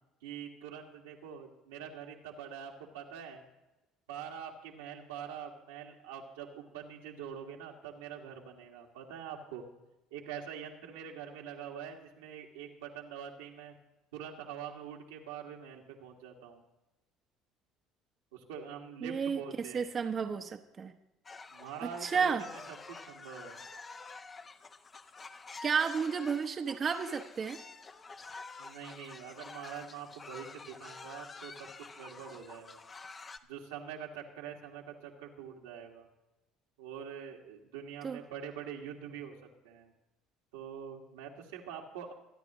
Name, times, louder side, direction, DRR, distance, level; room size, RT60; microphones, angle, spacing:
voice 1, 0.2-3.4 4.1-9.7 10.1-13.7 14.1-16.6 18.3-19.9 21.5-23.7 28.6-32.8 33.5-36.1 36.8-39.4 39.6-39.9 40.5-42.1, right 8 dB, 90° right, 0 dB, 1.8 m, -45 dB
voice 2, 19.0-19.4 19.7-20.9 21.8-22.4 25.6-27.6 38.0-38.2, right 6 dB, 40° right, 5 dB, 0.9 m, -32 dB
sound 1, 21.3-33.4, left 4 dB, 30° left, 0.9 m, -48 dB
25.0 x 9.9 x 3.0 m, 0.99 s
supercardioid pair, 75°, 0 cm